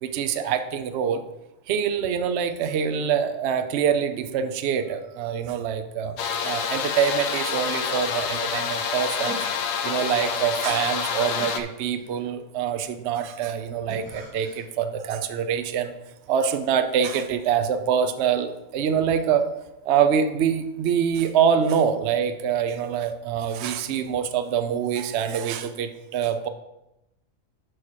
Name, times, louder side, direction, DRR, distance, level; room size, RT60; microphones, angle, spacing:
voice 1, 0.0-1.2 1.7-6.2 6.4-9.4 9.8-15.9 16.3-19.5 19.9-26.5, right 7 dB, 60° right, 9 dB, 0.8 m, -25 dB
sound 1, 6.2-11.6, left 7 dB, 70° left, 1.0 m, -28 dB
sound 2, 9.2-10.2 11.4-12.4 13.9-14.7, equal, 80° right, 1.8 m, -41 dB
5.7 x 4.8 x 6.3 m, 0.92 s
omnidirectional pair, 1.4 m